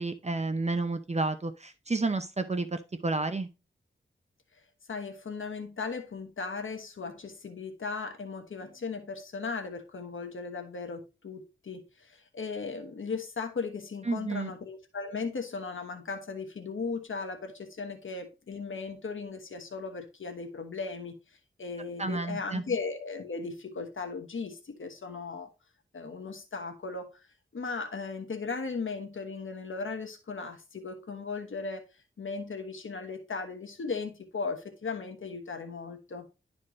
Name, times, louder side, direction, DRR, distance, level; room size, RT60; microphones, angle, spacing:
voice 1, 0.0-3.5 14.1-14.5 22.0-22.6, right 3 dB, 35° right, 0.7 m, -31 dB
voice 2, 4.9-21.2 21.6-25.5 25.9-27.2 27.5-31.8 32.2-36.2, left 4 dB, 75° left, 1.3 m, -37 dB
11.5 x 4.4 x 3.1 m
wide cardioid pair, 105°, 21 cm